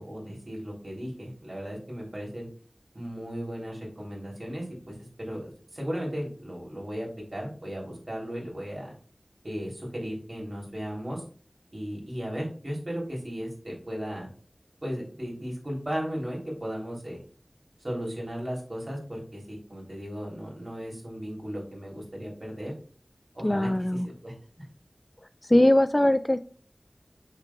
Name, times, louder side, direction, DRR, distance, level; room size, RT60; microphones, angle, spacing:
voice 1, 0.0-2.5 2.9-8.9 9.4-11.2 11.7-14.3 14.8-17.2 17.8-22.7 23.3-23.7 24.0-24.7, equal, 45° right, -2 dB, 3.4 m, -36 dB
voice 2, 23.4-24.1 25.4-26.4, left 1 dB, 25° left, 12 dB, 0.3 m, -21 dB
7.2 x 6.6 x 2.4 m, 0.42 s
wide cardioid pair, 45°, 0 cm